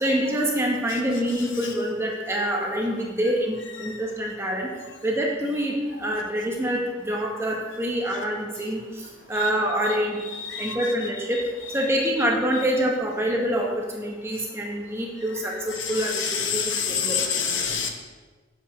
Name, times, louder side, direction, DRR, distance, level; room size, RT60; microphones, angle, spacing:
voice 1, 0.0-4.7 5.0-8.8 9.3-10.2 10.6-11.4 11.7-17.2 17.5-17.6, equal, 15° right, -1 dB, 1.0 m, -26 dB
voice 2, 10.4-10.8 15.8-17.9, left 6 dB, 80° left, 3 dB, 1.0 m, -27 dB
7.8 x 7.1 x 3.0 m, 1.4 s
head